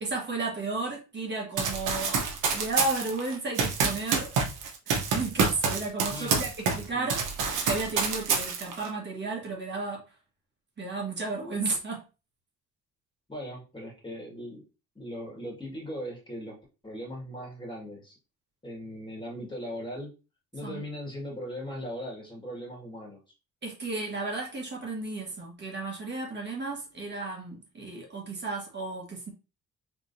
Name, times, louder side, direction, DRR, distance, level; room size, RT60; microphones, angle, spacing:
voice 1, 0.0-2.2 2.5-4.3 4.9-7.2 7.6-10.0 10.8-12.0 20.6-20.8 23.6-29.3, right 3 dB, 35° right, 1.5 m, -33 dB
Run, 1.6-6.8 7.1-8.9, right 5 dB, 85° right, 1.0 m, -27 dB
voice 2, 6.1-7.1 13.3-14.7 15.0-16.6 16.8-18.2 18.6-20.1 20.5-23.2, equal, 15° left, 1.9 m, -39 dB
3.5 x 3.5 x 2.7 m
cardioid pair, 90°, 30 cm